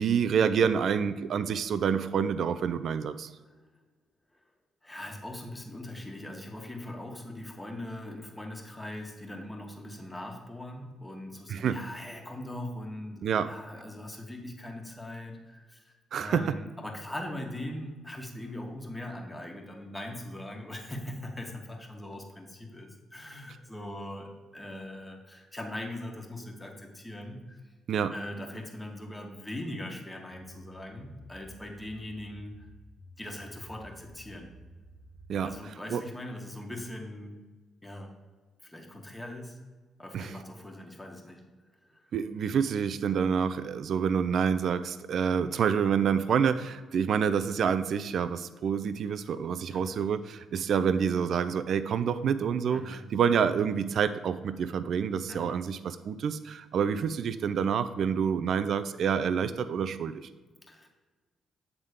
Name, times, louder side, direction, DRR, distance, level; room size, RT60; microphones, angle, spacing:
voice 1, 0.0-3.3 11.5-11.8 13.2-13.5 16.1-16.5 27.9-28.1 35.3-35.5 35.9-36.0 40.1-40.3 42.1-60.2, right 7 dB, 65° right, 12 dB, 0.4 m, -27 dB
voice 2, 4.8-27.6 28.1-32.7 33.2-34.5 35.4-37.4 37.8-38.1 38.6-39.6 40.0-41.4 41.9-42.0 49.7-50.0 52.7-53.1 55.3-55.6 60.7-60.9, left 1 dB, 15° left, 1 dB, 1.6 m, -41 dB
sound 1, 30.3-35.5, right 1 dB, 70° left, 1.1 m, -52 dB
7.9 x 3.7 x 5.1 m, 1.3 s
supercardioid pair, 55°, 0 cm